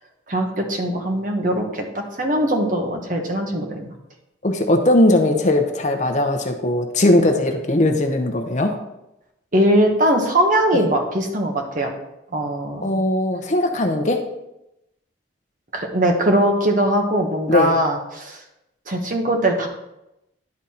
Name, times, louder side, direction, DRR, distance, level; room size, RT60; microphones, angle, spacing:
voice 1, 0.3-3.9 9.5-11.9 12.3-13.0 15.7-18.4 18.9-19.7, right 1 dB, 45° right, 2 dB, 1.1 m, -21 dB
voice 2, 4.4-8.7 10.7-10.9 12.8-14.2 17.5-17.7, left 1 dB, 40° left, 4 dB, 0.7 m, -19 dB
10.5 x 4.0 x 4.3 m, 0.89 s
head